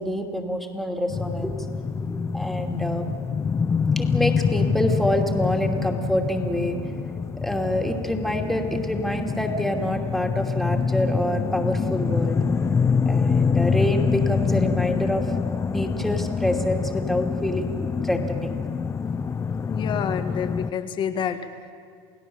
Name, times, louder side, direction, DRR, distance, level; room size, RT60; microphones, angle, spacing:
voice 1, 0.0-1.7 2.0-3.0 4.0-6.8 7.4-12.4 13.1-15.3 15.7-18.6, equal, ahead, 2 dB, 2.8 m, -27 dB
sound 1, 1.1-20.7, left 5 dB, 20° left, 0.6 m, -25 dB
voice 2, 19.7-21.7, left 8 dB, 40° left, 8 dB, 1.6 m, -28 dB
29.0 x 17.0 x 7.2 m, 2.2 s
supercardioid pair, 105°, 12 cm